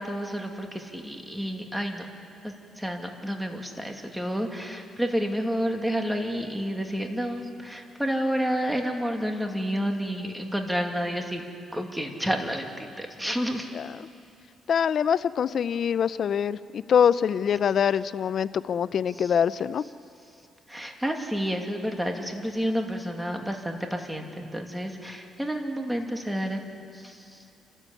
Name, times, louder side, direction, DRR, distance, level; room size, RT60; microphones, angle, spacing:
voice 1, 0.0-2.1 2.4-11.4 11.7-13.7 19.2-19.3 20.7-26.6 26.9-27.4, equal, 5° right, 3 dB, 2.5 m, -30 dB
voice 2, 14.7-19.8, left 8 dB, 60° left, 16 dB, 0.6 m, -24 dB
29.0 x 13.5 x 8.5 m, 2.5 s
cardioid pair, 90°, 0 cm